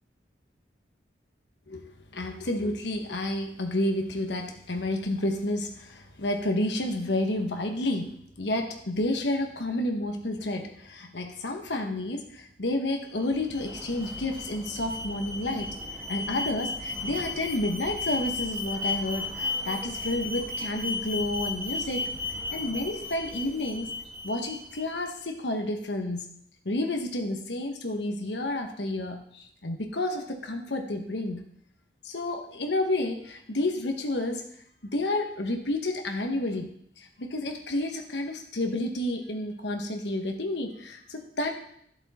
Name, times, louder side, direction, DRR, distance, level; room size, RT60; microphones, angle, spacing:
voice 1, 1.7-15.7 16.1-22.1 22.5-23.9 24.2-26.2 26.6-31.4 32.0-34.4 34.8-36.7 37.0-41.5, left 1 dB, 75° left, 4 dB, 1.3 m, -30 dB
Alarm, 13.1-25.1, left 2 dB, 15° right, 2.3 m, -35 dB
11.0 x 7.8 x 4.3 m, 0.68 s
head